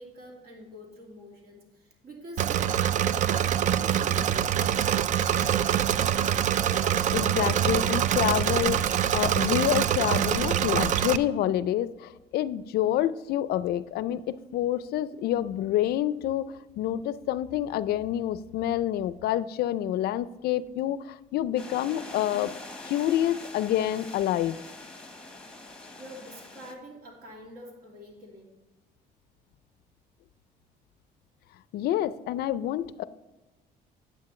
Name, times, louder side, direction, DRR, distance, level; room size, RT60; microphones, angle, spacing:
voice 1, 0.0-4.8 25.9-28.6, equal, 65° right, -1 dB, 2.5 m, -46 dB
Engine / Mechanisms, 2.4-11.2, right 10 dB, 45° right, 0.4 m, -25 dB
voice 2, 7.1-22.5 22.8-24.6 31.7-33.0, left 12 dB, 70° left, 16 dB, 0.4 m, -28 dB
sound 1, 21.6-26.7, left 2 dB, 5° left, 1.1 m, -44 dB
9.7 x 8.2 x 3.1 m, 1.1 s
cardioid pair, 110°, 17 cm